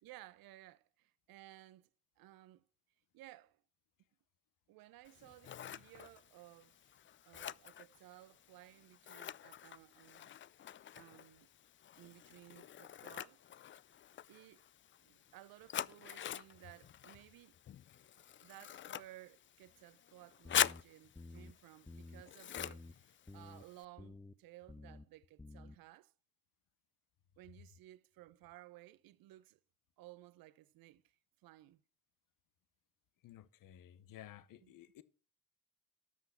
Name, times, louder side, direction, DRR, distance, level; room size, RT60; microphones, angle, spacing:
voice 1, 0.0-1.9 2.2-2.7 3.1-3.6 4.7-7.0 7.3-10.3 10.9-11.5 12.0-13.4 14.3-14.6 15.0-17.6 18.4-26.1 27.4-29.6 30.0-31.8 34.6-34.7, right 16 dB, 75° right, 0.7 m, -58 dB
Scissors, 5.1-23.8, left 10 dB, 35° left, 0.4 m, -44 dB
sound 1, 20.4-20.8 21.1-21.5 21.9-22.2 22.6-22.9 23.3-23.6 24.0-24.3 24.7-25.0 25.4-25.8, left 2 dB, 10° left, 0.7 m, -51 dB
voice 2, 33.2-35.0, left 12 dB, 65° left, 0.9 m, -55 dB
12.5 x 5.7 x 5.8 m
supercardioid pair, 55°, 35 cm